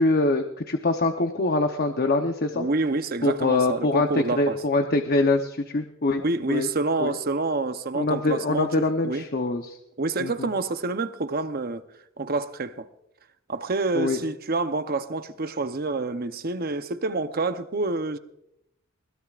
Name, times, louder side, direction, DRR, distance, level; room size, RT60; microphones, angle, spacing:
voice 1, 0.0-2.7 3.2-6.2 6.5-6.7 7.0-7.1 7.9-9.8 10.2-10.5 13.9-14.2, left 2 dB, 45° left, 0.9 m, -24 dB
voice 2, 2.5-4.6 6.2-8.7 9.0-9.3 10.0-11.8 12.2-12.9 13.5-18.2, right 3 dB, 45° right, 0.8 m, -27 dB
21.5 x 19.5 x 2.5 m
head